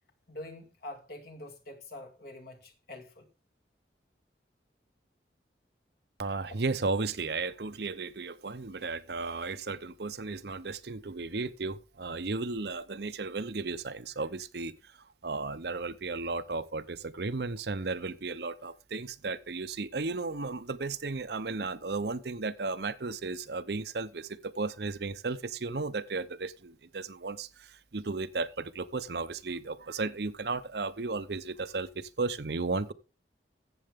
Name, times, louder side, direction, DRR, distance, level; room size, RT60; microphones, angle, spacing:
voice 1, 0.3-3.3, left 1 dB, 55° left, 2.3 m, -45 dB
voice 2, 6.2-14.7 15.2-32.9, right 3 dB, 60° right, 0.7 m, -34 dB
14.5 x 7.8 x 3.6 m
head